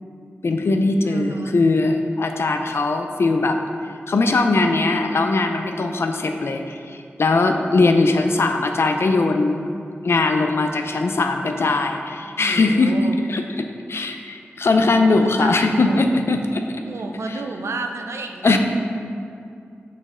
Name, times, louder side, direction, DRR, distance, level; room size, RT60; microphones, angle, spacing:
voice 1, 0.4-3.6 4.1-9.6 10.0-13.0 13.3-16.6 17.3-17.4 18.4-18.6, left 3 dB, 70° left, 5 dB, 0.5 m, -20 dB
voice 2, 1.0-1.5 12.4-13.2 15.2-16.0 16.8-18.5, right 3 dB, 85° right, 4 dB, 0.5 m, -31 dB
6.6 x 5.3 x 3.6 m, 2.4 s
wide cardioid pair, 65°, 4 cm